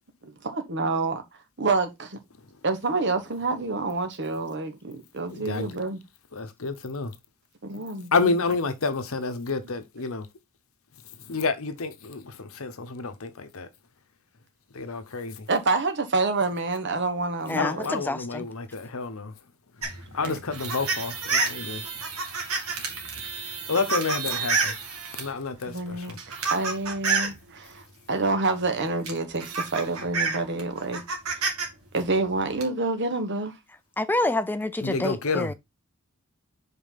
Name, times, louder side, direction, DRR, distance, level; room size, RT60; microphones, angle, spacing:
voice 1, 0.4-1.2 1.6-2.2 2.6-4.8 5.2-6.0 7.6-8.4 15.5-17.9 20.2-20.4 25.7-26.1 26.5-27.8 28.1-31.0 31.9-33.6, right 3 dB, 50° right, 1.3 m, -27 dB
voice 2, 5.5-5.8 6.3-7.1 8.1-10.3 11.3-13.7 14.7-15.5 17.6-19.3 19.8-21.8 23.7-24.7 25.2-26.2 34.8-35.5, left 4 dB, 65° left, 0.9 m, -29 dB
voice 3, 17.5-18.5 34.0-35.5, left 2 dB, 10° left, 0.4 m, -27 dB
sound 1, 19.8-25.3 26.0-27.4 28.6-28.7 29.1-31.7 32.0-32.6, right 4 dB, 75° right, 2.1 m, -29 dB
5.3 x 4.1 x 5.7 m
head